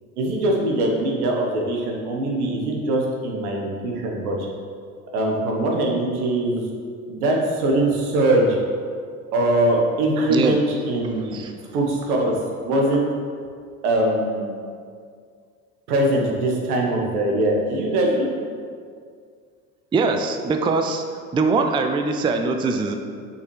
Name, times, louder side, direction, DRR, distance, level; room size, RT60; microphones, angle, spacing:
voice 1, 0.2-4.4 5.1-6.6 7.1-8.6 9.3-11.4 11.7-13.1 13.8-14.5 15.9-18.3, right 1 dB, 80° right, 0 dB, 1.2 m, -22 dB
voice 2, 19.9-21.0 21.3-22.9, right 4 dB, 10° right, 5 dB, 0.4 m, -22 dB
6.6 x 5.8 x 3.2 m, 2.1 s
hypercardioid pair, 65°, 44 cm